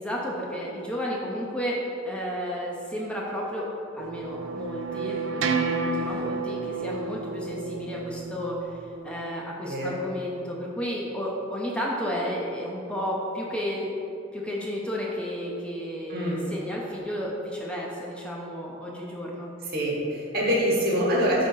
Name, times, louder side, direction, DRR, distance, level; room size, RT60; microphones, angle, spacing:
voice 1, 0.0-3.7 3.9-13.9 14.3-19.5, equal, 5° left, -4 dB, 0.5 m, -32 dB
sound 1, 4.0-9.1, right 4 dB, 75° right, 0.4 m, -31 dB
voice 2, 9.6-10.0 16.1-16.4 19.6-21.5, equal, 55° right, -4 dB, 1.3 m, -25 dB
4.9 x 3.8 x 5.5 m, 2.8 s
head